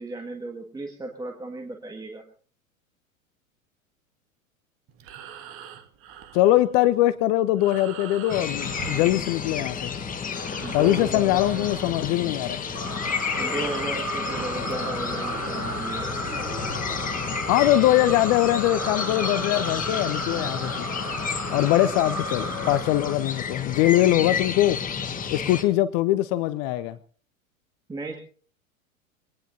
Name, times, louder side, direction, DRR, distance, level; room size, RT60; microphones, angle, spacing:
voice 1, 0.0-2.2 10.6-11.7 13.3-16.1 27.9-28.2, right 2 dB, 10° right, 2 dB, 1.8 m, -35 dB
Breathing, 4.9-9.9 10.1-14.8, right 8 dB, 30° right, 1.5 m, -42 dB
voice 2, 6.3-9.9 10.7-12.6 17.5-20.9 21.5-24.8 25.3-27.0, left 15 dB, 35° left, 15 dB, 0.8 m, -22 dB
sound 1, 8.3-25.6, left 6 dB, 20° left, 1.6 m, -31 dB
sound 2, 12.7-23.5, right 1 dB, 85° right, 3.9 m, -33 dB
24.0 x 18.5 x 2.7 m, 0.43 s
figure-of-eight pair, 90°, 41 cm